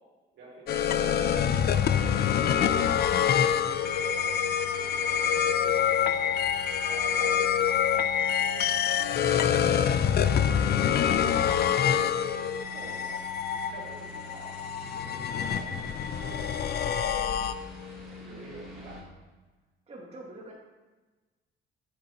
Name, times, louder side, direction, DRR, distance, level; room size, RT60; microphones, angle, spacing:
voice 1, 0.3-3.3 3.8-6.3 6.8-11.2 11.5-13.2 13.7-16.4 17.5-19.0, right 3 dB, 80° right, -3 dB, 2.3 m, -48 dB
sound 1, 0.7-17.9, left 8 dB, 55° left, 0.4 m, -26 dB
sound 2, 1.5-19.0, left 3 dB, ahead, 2.3 m, -46 dB
voice 2, 18.8-19.2 19.9-20.5, right 1 dB, 30° right, -4 dB, 1.8 m, -46 dB
7.7 x 7.1 x 2.9 m, 1.2 s
cardioid pair, 90°, 20 cm